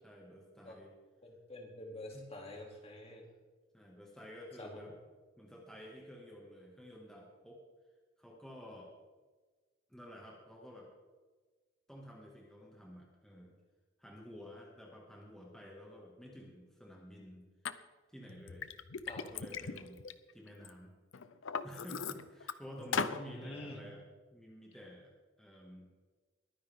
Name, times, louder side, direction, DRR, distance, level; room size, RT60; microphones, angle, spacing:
voice 1, 0.0-0.9 2.1-2.3 3.7-4.9 5.4-7.6 8.2-8.9 9.9-10.9 11.9-13.6 14.0-17.5 18.1-18.7 19.2-20.9 21.6-24.0 24.3-25.9, equal, 5° left, -2 dB, 2.1 m, -51 dB
voice 2, 1.2-3.3 4.6-4.7 19.1-19.2 22.8-23.8, left 1 dB, 35° left, 0 dB, 2.9 m, -48 dB
Liquid, 17.6-17.7 18.3-20.7 21.1-22.5 22.9-23.2, left 5 dB, 80° left, 0.7 m, -38 dB
22.0 x 9.9 x 3.7 m, 1.4 s
head